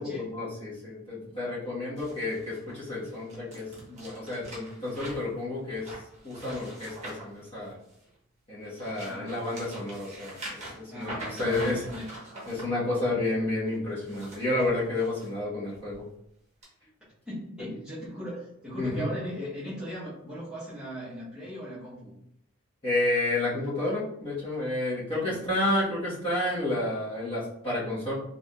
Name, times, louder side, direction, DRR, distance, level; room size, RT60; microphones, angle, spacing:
voice 1, 0.0-5.9 6.2-7.8 8.5-11.1 11.4-11.8 12.5-16.0 18.8-19.0 22.8-28.1, left 2 dB, 25° left, -9 dB, 1.1 m, -30 dB
sound 1, 2.0-8.1 8.6-12.6 13.9-15.3 15.7-16.0 16.6-16.7, right 1 dB, 30° right, 0.9 m, -43 dB
voice 2, 9.0-9.4 10.9-12.1 17.3-22.2 25.2-25.4, equal, 5° right, -12 dB, 0.8 m, -38 dB
3.4 x 2.6 x 2.2 m, 0.76 s
head